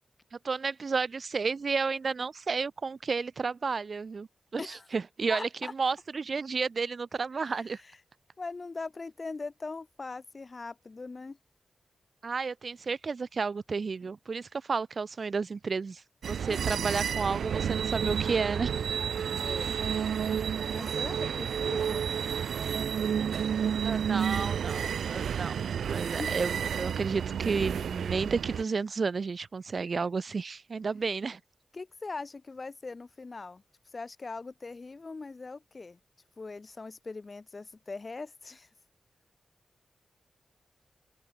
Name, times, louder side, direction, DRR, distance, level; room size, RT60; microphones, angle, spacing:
voice 1, 0.3-4.3 4.5-7.8 12.2-18.7 23.8-25.5 25.9-31.4, right 4 dB, 60° right, 3.5 m, -32 dB
voice 2, 5.3-5.7 8.4-11.4 19.4-19.7 20.7-22.0 26.2-26.4 31.7-33.6 33.9-36.0 36.4-38.7, left 3 dB, 50° left, 4.4 m, -41 dB
sound 1, 16.2-28.6, right 8 dB, 85° right, 1.7 m, -31 dB
open air
supercardioid pair, 40°, 0 cm